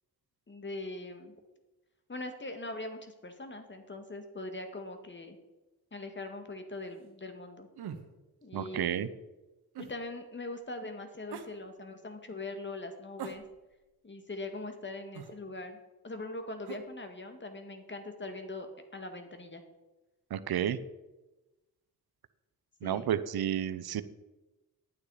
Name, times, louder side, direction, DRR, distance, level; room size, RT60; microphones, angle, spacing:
voice 1, 0.5-1.3 2.1-5.4 5.9-7.7 8.4-9.0 9.8-13.4 14.0-15.8 16.0-18.7 18.9-19.6 22.8-23.1, left 2 dB, 30° left, 6 dB, 2.0 m, -41 dB
sound 1, 7.7-8.1 9.7-10.0 11.3-11.5 13.2-13.8 15.1-15.4 16.6-16.9, right 7 dB, 90° right, 1.1 m, -42 dB
voice 2, 8.5-9.1 20.3-20.8 22.8-24.0, right 10 dB, 70° right, 13 dB, 0.8 m, -31 dB
11.0 x 9.5 x 4.9 m, 1.1 s
cardioid pair, 70°, 38 cm